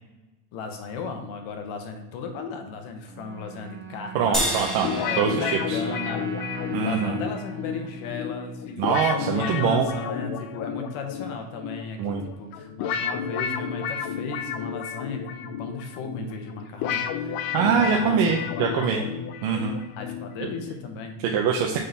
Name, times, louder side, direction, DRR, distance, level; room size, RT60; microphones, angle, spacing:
voice 1, 0.5-17.4 17.6-18.9 20.0-21.2, left 4 dB, 75° left, 5 dB, 1.1 m, -36 dB
sound 1, 3.1-9.5, right 8 dB, 25° right, 0.5 m, -40 dB
voice 2, 4.1-5.8 6.7-7.2 8.8-9.9 12.0-12.2 17.5-19.0 19.4-19.8 21.2-21.8, right 7 dB, 70° right, 1 dB, 0.8 m, -24 dB
sound 2, 4.3-6.9, equal, ahead, 1.1 m, -31 dB
sound 3, 4.8-20.8, left 8 dB, 50° left, 0.5 m, -32 dB
6.4 x 3.9 x 4.0 m, 1.0 s
cardioid pair, 170°, 49 cm